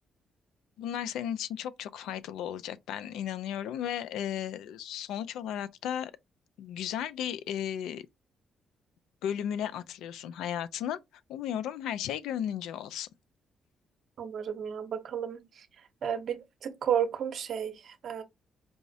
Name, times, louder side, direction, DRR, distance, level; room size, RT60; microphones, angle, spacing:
voice 1, 0.8-6.1 6.6-8.0 9.2-11.0 11.3-13.1, left 10 dB, 85° left, 0.3 m, -35 dB
voice 2, 14.2-15.7 16.0-18.2, right 8 dB, 60° right, 0.7 m, -32 dB
4.6 x 2.0 x 2.6 m
cardioid pair, 90°, 0 cm